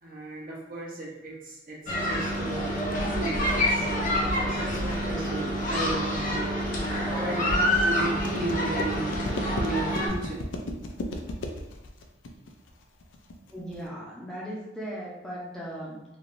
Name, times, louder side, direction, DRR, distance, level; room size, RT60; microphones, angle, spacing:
voice 1, 0.0-6.5 7.0-10.3, right 2 dB, 50° right, -5 dB, 0.9 m, -35 dB
sound 1, 1.9-13.9, left 1 dB, 85° left, 0.4 m, -37 dB
sound 2, 1.9-10.1, equal, 45° left, 0.6 m, -27 dB
voice 2, 13.5-16.1, right 1 dB, 5° left, -7 dB, 0.6 m, -38 dB
3.2 x 2.6 x 2.5 m, 0.97 s
head